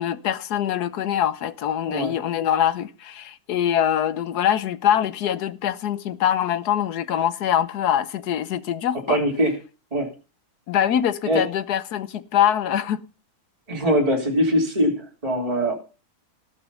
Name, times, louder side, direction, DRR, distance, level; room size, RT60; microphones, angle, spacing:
voice 1, 0.0-9.2 10.7-13.0, left 10 dB, 90° left, 1.4 m, -23 dB
voice 2, 9.1-9.6 9.9-10.1 11.3-11.4 13.7-15.8, equal, 25° right, 3.1 m, -22 dB
18.5 x 6.5 x 5.6 m
omnidirectional pair, 1.6 m